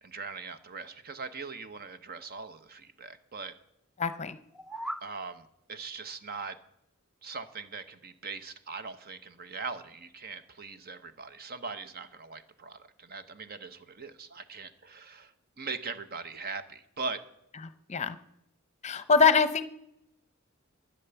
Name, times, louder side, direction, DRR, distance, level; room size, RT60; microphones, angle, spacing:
voice 1, 0.0-3.5 5.0-6.6 7.2-17.2, right 4 dB, 45° right, 11 dB, 1.0 m, -41 dB
voice 2, 4.0-4.4 17.9-18.2 18.8-19.7, left 5 dB, 35° left, 13 dB, 0.7 m, -24 dB
sound 1, 4.4-5.1, right 1 dB, ahead, 0.5 m, -38 dB
12.0 x 10.0 x 7.0 m, 0.81 s
head